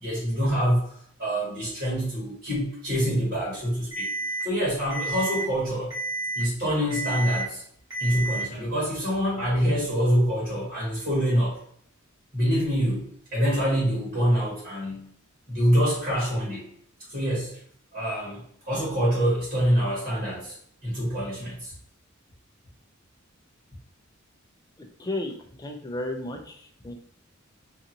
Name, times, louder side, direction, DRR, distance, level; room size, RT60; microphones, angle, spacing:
voice 1, 0.0-0.9 1.2-4.1 4.4-5.9 6.3-7.6 8.0-11.6 12.3-15.1 15.5-16.7 17.1-17.5 17.9-21.7, equal, 45° right, -7 dB, 1.3 m, -25 dB
Alarm, 3.9-4.4 4.9-5.4 5.9-6.4 6.9-7.4 7.9-8.4, right 2 dB, 15° right, 1.2 m, -30 dB
voice 2, 24.8-26.9, left 2 dB, 20° left, 2 dB, 0.4 m, -34 dB
2.6 x 2.6 x 2.8 m, 0.62 s
head